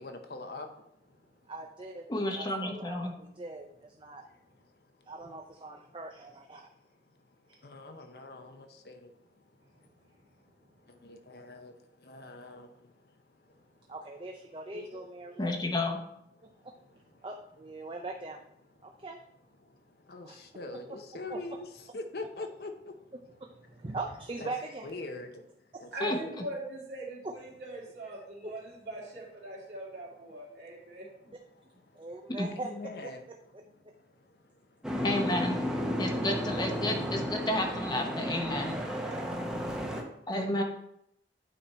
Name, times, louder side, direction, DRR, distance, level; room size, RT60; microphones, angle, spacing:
voice 1, 0.0-1.5 4.0-5.1 5.9-6.0 6.7-13.9 14.7-15.4 16.4-17.3 17.8-17.9 18.8-19.1 19.6-23.1 24.4-24.5 24.8-25.5 25.8-26.3 30.5-31.0 31.5-32.1 32.5-33.2 33.6-35.0 39.6-40.6, left 2 dB, 60° left, 6 dB, 0.8 m, -46 dB
voice 2, 1.5-2.1 2.4-4.2 5.1-6.7 7.5-7.6 13.9-15.4 17.2-18.4 18.8-19.2 20.2-20.4 21.3-21.4 23.4-24.9 31.9-32.7 38.7-39.6, right 2 dB, 30° right, 2 dB, 0.5 m, -41 dB
voice 3, 2.1-3.1 15.4-16.0 26.0-26.4 32.4-32.5 35.0-35.6 36.0-38.8 40.3-40.6, left 1 dB, 25° left, 3 dB, 0.9 m, -31 dB
voice 4, 25.9-31.1, right 1 dB, 70° right, -4 dB, 2.6 m, -41 dB
Boat Water vehicle, 34.8-40.0, equal, 5° right, 0.9 m, -33 dB
8.8 x 4.3 x 4.3 m, 0.76 s
head